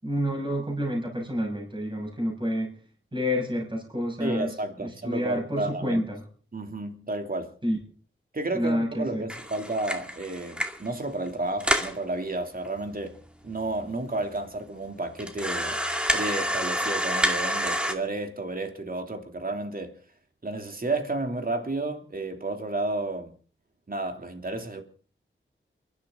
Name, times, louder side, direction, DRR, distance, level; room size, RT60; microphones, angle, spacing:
voice 1, 0.0-2.8 3.1-6.2 7.6-7.8 8.5-9.3, equal, 25° right, 6.4 m, -29 dB
voice 2, 4.2-6.0 6.5-7.5 8.3-13.2 13.4-15.8 16.1-19.9 20.4-23.3 23.9-24.8, right 2 dB, 45° right, 3.0 m, -31 dB
sound 1, 9.3-10.9 11.3-11.4 11.6-12.0 12.6-12.7 13.0-13.1 13.8-13.9 14.3-14.4 15.2-17.9, equal, 5° right, 2.2 m, -28 dB
29.0 x 12.0 x 3.8 m
wide cardioid pair, 60°, 21 cm